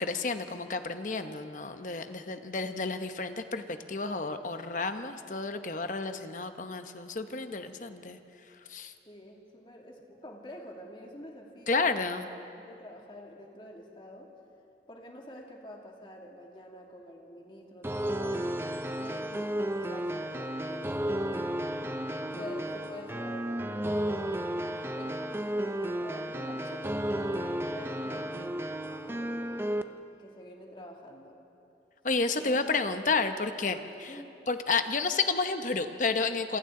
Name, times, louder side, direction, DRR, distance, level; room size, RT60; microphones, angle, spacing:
voice 1, 0.0-8.2 8.7-8.9 11.7-12.2 32.0-34.1 34.5-36.6, left 4 dB, 45° left, 8 dB, 1.0 m, -31 dB
voice 2, 9.1-12.2 12.6-14.3 14.9-21.7 22.4-28.3 29.0-29.9 30.2-31.4 32.4-32.6 33.0-33.1 34.1-34.4, left 1 dB, 30° left, 0 dB, 2.4 m, -47 dB
sound 1, 17.8-29.8, right 1 dB, 15° right, 0.6 m, -33 dB
27.5 x 26.0 x 3.9 m, 2.8 s
head